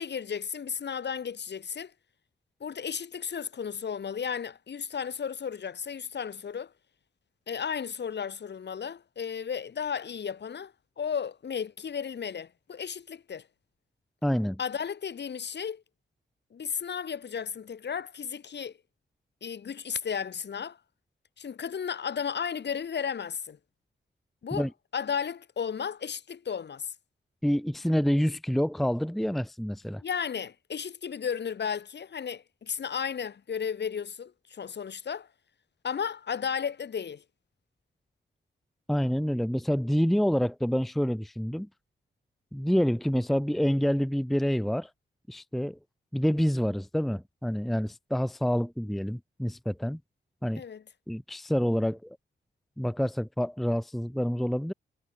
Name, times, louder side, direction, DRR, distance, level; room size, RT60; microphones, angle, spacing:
voice 1, 0.0-1.9 2.6-6.7 7.5-13.5 14.6-15.8 16.5-18.7 19.4-20.8 21.4-23.6 24.4-24.7 24.9-26.9 30.0-35.3 35.8-37.2 50.6-50.8, left 7 dB, 65° left, 3.0 m, -34 dB
voice 2, 14.2-14.6 24.5-24.7 27.4-30.0 38.9-41.7 42.5-44.9 45.3-45.8 46.1-50.0 50.4-50.6 51.1-52.2 52.8-54.7, equal, ahead, 0.6 m, -27 dB
wide cardioid pair, 150°, 19 cm